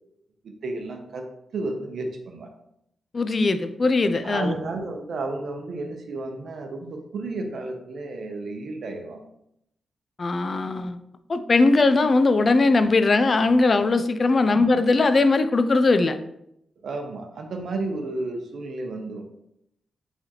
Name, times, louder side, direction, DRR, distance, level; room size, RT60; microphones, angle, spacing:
voice 1, 0.4-1.3 1.5-2.5 4.2-9.3 14.4-14.9 16.8-19.3, right 2 dB, 70° right, 4 dB, 0.7 m, -32 dB
voice 2, 3.1-4.5 10.2-11.0 11.3-16.2, left 3 dB, 45° left, 10 dB, 0.4 m, -20 dB
4.5 x 3.4 x 2.9 m, 0.77 s
cardioid pair, 55°, 0 cm